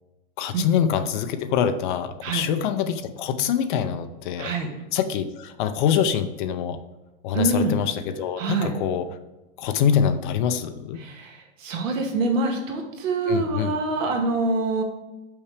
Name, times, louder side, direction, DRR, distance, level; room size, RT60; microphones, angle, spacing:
voice 1, 0.4-4.5 4.9-6.8 7.2-9.1 9.6-11.0 13.2-13.7, left 8 dB, 40° left, 10 dB, 0.5 m, -25 dB
voice 2, 4.4-4.7 7.3-7.8 8.4-8.7 11.0-14.8, right 3 dB, 85° right, 2 dB, 1.8 m, -25 dB
5.7 x 5.6 x 3.3 m, 1.1 s
supercardioid pair, 155°, 38 cm